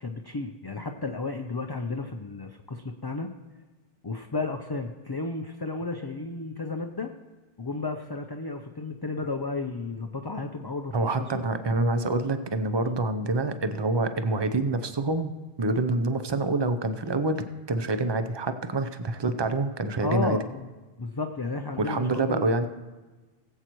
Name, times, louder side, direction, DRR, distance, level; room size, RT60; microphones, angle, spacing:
voice 1, 0.0-3.3 4.0-7.1 7.6-11.0 20.0-20.7 21.0-22.4, left 3 dB, 30° left, 4 dB, 0.5 m, -33 dB
voice 2, 10.9-15.3 15.6-20.4 21.8-22.7, right 2 dB, 30° right, 10 dB, 0.5 m, -26 dB
20.0 x 8.0 x 3.0 m, 1.3 s
omnidirectional pair, 1.0 m